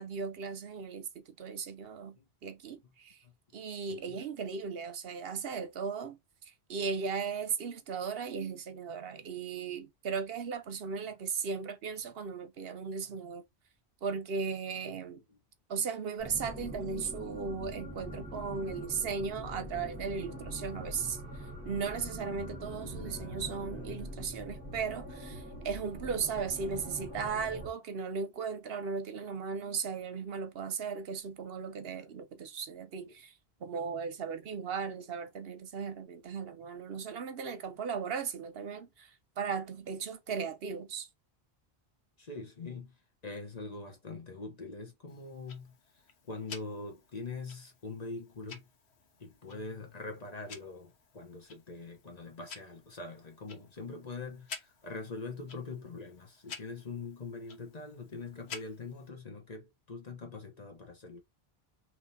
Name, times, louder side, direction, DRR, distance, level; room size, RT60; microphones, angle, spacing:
voice 1, 0.0-3.2 3.5-6.2 6.7-13.4 14.0-15.2 15.7-21.2 21.7-33.3 33.6-39.1 39.4-41.1, right 5 dB, 70° right, 0.9 m, -37 dB
voice 2, 3.9-4.2 13.0-13.2 14.9-15.4 17.0-17.1 42.2-42.9 43.2-45.7 46.3-48.7 49.2-61.2, left 3 dB, 40° left, 1.0 m, -43 dB
sound 1, 16.2-27.7, equal, 10° right, 1.6 m, -43 dB
Tick-tock, 45.1-59.1, left 6 dB, 80° left, 1.1 m, -52 dB
3.5 x 3.0 x 4.0 m
omnidirectional pair, 1.1 m